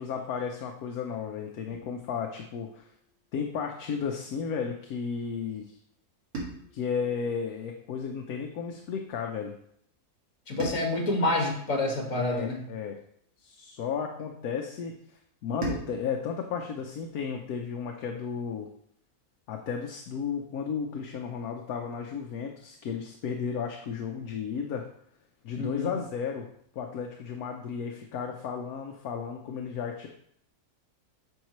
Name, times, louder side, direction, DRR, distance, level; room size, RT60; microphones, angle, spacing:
voice 1, 0.0-2.9 3.3-5.8 6.7-9.5 12.1-13.0 13.4-14.9 15.4-18.7 19.5-24.9 25.4-26.5 26.7-30.1, left 6 dB, 70° left, 2 dB, 1.2 m, -33 dB
sound 1, 1.7-3.9 6.3-8.7 10.6-13.1 15.6-18.1, right 2 dB, 65° right, 2.5 m, -43 dB
voice 2, 10.5-12.6 25.6-26.0, left 2 dB, 55° left, 1 dB, 2.1 m, -28 dB
9.3 x 6.5 x 3.1 m, 0.68 s
omnidirectional pair, 1.7 m